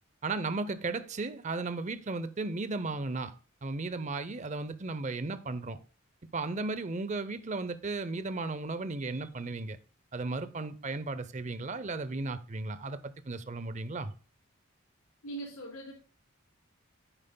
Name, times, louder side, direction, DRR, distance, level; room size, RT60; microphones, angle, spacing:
voice 1, 0.2-3.3 3.6-5.8 6.3-9.8 10.1-14.1, right 3 dB, 35° right, 0.6 m, -35 dB
voice 2, 15.2-15.9, right 2 dB, 90° left, 4.0 m, -40 dB
10.5 x 8.9 x 2.2 m
head